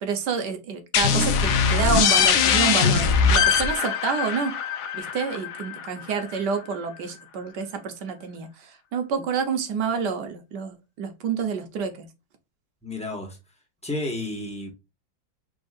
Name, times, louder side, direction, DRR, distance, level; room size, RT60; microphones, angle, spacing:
voice 1, 0.0-4.5 4.9-12.1, right 6 dB, 70° right, 1.5 m, -28 dB
sound 1, 0.9-6.4, left 6 dB, 65° left, 0.9 m, -22 dB
voice 2, 12.8-13.4 13.8-14.7, left 2 dB, 5° left, 1.3 m, -31 dB
5.4 x 3.5 x 2.4 m
omnidirectional pair, 2.0 m